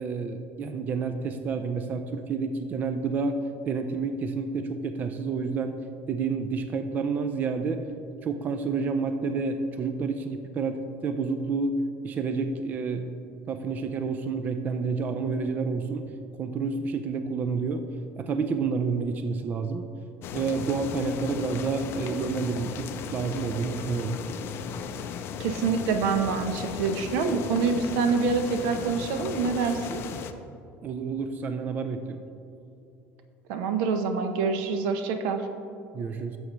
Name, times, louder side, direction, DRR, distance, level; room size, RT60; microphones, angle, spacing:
voice 1, 0.0-3.4 3.7-5.8 6.1-7.9 8.2-13.1 13.5-16.1 16.4-17.9 18.2-19.9 20.3-24.2 30.8-32.2 35.9-36.4, right 4 dB, 30° right, 8 dB, 0.4 m, -29 dB
sound 1, 20.2-30.3, left 7 dB, 45° left, 0.4 m, -36 dB
voice 2, 25.4-30.0 33.5-35.5, right 5 dB, 80° right, 7 dB, 0.7 m, -26 dB
11.0 x 7.1 x 3.0 m, 2.7 s
cardioid pair, 145°, 5 cm